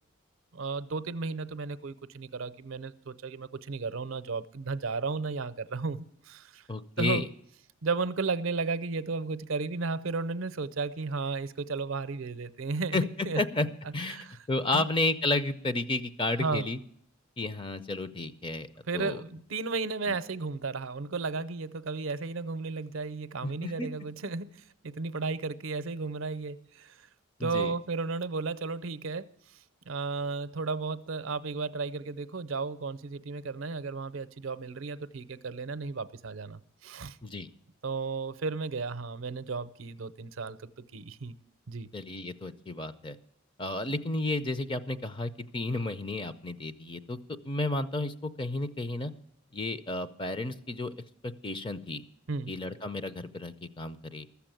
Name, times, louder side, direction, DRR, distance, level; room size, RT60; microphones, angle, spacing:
voice 1, 0.5-6.7 7.0-7.2 7.8-13.4 14.1-14.4 14.7-14.9 16.4-16.7 18.9-27.1 27.4-29.3 29.9-37.2 37.8-41.4 41.7-41.9 52.3-52.5, right 4 dB, 70° right, 0.6 m, -34 dB
voice 2, 6.7-7.3 12.9-13.0 13.3-13.7 13.9-16.8 17.4-18.7 18.9-19.2 20.1-20.2 23.4-23.9 27.4-27.7 37.2-37.5 41.9-43.2 43.6-47.2 47.4-49.1 49.5-50.9 51.2-52.0 52.5-54.3, left 2 dB, 25° left, 0.5 m, -32 dB
14.0 x 7.1 x 9.0 m
head